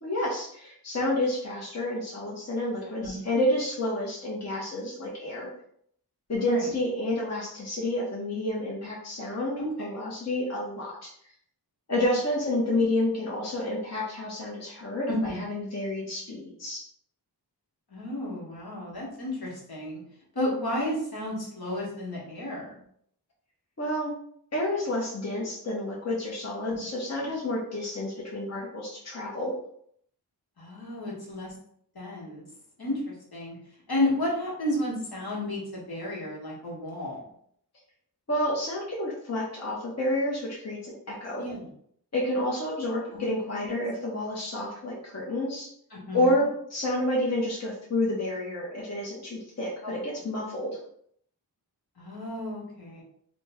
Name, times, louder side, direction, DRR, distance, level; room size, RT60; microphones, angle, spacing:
voice 1, 0.0-5.5 6.3-11.1 11.9-16.8 23.8-24.1 24.5-29.5 38.3-41.4 42.1-45.7 46.1-50.8, left 1 dB, 40° left, -4 dB, 0.8 m, -29 dB
voice 2, 15.1-15.4 17.9-20.0 20.3-22.8 26.7-26.8 27.2-27.3 30.6-31.5 31.9-32.4 32.8-33.6 33.9-37.2 41.4-41.7 43.1-43.3 43.5-43.6 45.9-46.5 49.8-49.9 52.0-53.0, left 1 dB, 60° left, -5 dB, 1.2 m, -32 dB
3.0 x 2.1 x 3.4 m, 0.67 s
wide cardioid pair, 50°, 41 cm